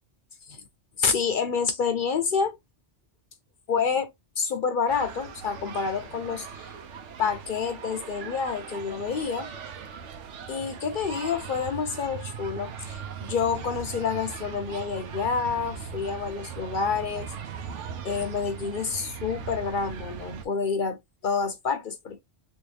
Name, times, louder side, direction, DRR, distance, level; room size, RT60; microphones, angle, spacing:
voice 1, 1.0-2.6 3.7-4.1 4.4-6.7 7.2-9.5 10.5-17.3 18.0-22.2, left 6 dB, 55° left, 0.7 m, -28 dB
sound 1, 4.9-20.5, right 7 dB, 85° right, 1.0 m, -39 dB
3.3 x 2.6 x 3.2 m
omnidirectional pair, 1.2 m